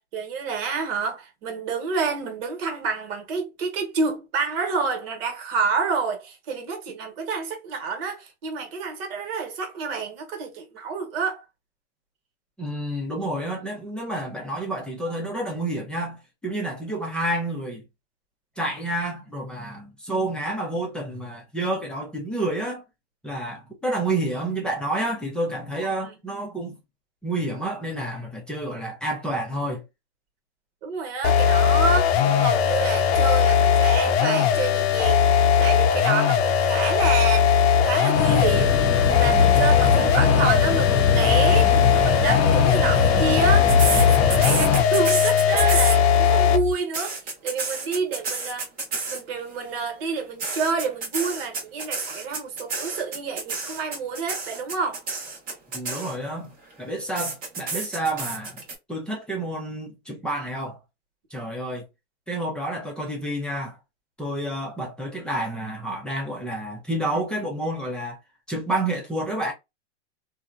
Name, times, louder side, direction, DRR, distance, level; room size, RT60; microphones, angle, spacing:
voice 1, 0.0-11.4 25.8-26.2 30.8-35.3 35.6-38.9 39.2-47.2 47.4-48.6 49.1-55.0, right 5 dB, 55° right, 1.3 m, -28 dB
voice 2, 12.6-17.8 18.6-22.8 23.2-26.8 27.2-29.8 55.7-56.5 56.8-60.8 61.3-61.9 62.3-63.8 64.2-68.2 68.5-69.5, right 1 dB, 5° left, 0.6 m, -29 dB
sound 1, 31.2-46.7, left 7 dB, 60° left, 0.6 m, -19 dB
sound 2, 38.1-44.8, left 5 dB, 35° left, 0.9 m, -22 dB
sound 3, 43.7-46.3 46.7-49.4 50.4-56.4 57.2-58.7, right 4 dB, 25° right, 1.1 m, -29 dB
2.7 x 2.2 x 2.4 m
hypercardioid pair, 135°, 35 cm